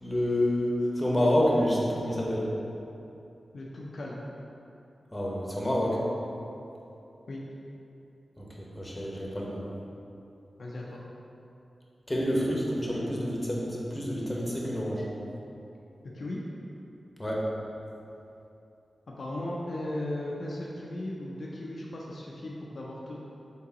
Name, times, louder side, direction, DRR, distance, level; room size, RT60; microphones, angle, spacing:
voice 1, 0.0-2.5 5.1-6.0 8.4-9.6 12.1-15.0 17.2-17.5, equal, 20° left, -4 dB, 0.9 m, -28 dB
voice 2, 3.5-4.2 7.3-7.4 10.6-11.0 16.1-16.4 19.1-23.2, left 1 dB, 65° left, -4 dB, 0.4 m, -36 dB
3.8 x 3.5 x 2.9 m, 2.8 s
cardioid pair, 40°, 0 cm